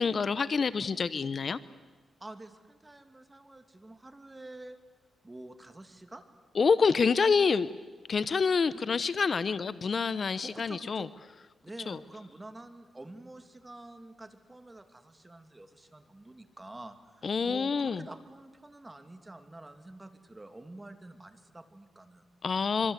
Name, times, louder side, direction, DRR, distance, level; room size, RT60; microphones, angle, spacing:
voice 1, 0.0-1.6 6.6-7.7 8.1-11.1 11.9-12.0 17.2-18.0 22.4-22.9, left 5 dB, 50° left, 16 dB, 0.8 m, -27 dB
voice 2, 2.2-4.8 5.2-6.2 8.7-9.0 10.4-11.2 11.6-22.2, right 2 dB, 20° right, 8 dB, 2.7 m, -48 dB
26.5 x 24.5 x 8.2 m, 1.3 s
cardioid pair, 75°, 0 cm